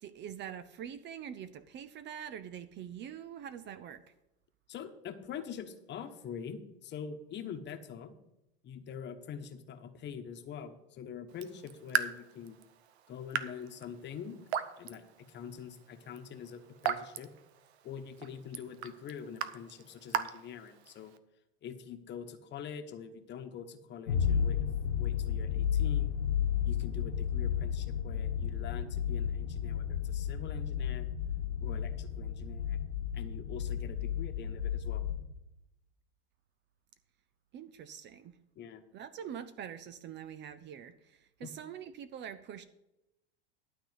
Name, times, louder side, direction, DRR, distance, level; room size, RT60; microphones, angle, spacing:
voice 1, 0.0-4.0 37.5-38.4 38.9-42.6, right 9 dB, 35° right, 14 dB, 0.6 m, -44 dB
voice 2, 4.7-8.2 8.6-12.6 13.1-14.4 14.8-17.3 17.8-21.1 21.6-24.7 25.0-26.1 26.7-31.1 31.6-32.8 33.1-35.0 38.5-38.8 41.4-41.5, left 7 dB, 35° left, 7 dB, 1.2 m, -44 dB
Raindrop / Drip, 11.3-21.2, right 9 dB, 90° right, 0.8 m, -39 dB
sound 1, 24.1-35.3, left 8 dB, 90° left, 1.6 m, -32 dB
12.0 x 4.2 x 8.0 m, 0.91 s
supercardioid pair, 110°, 32 cm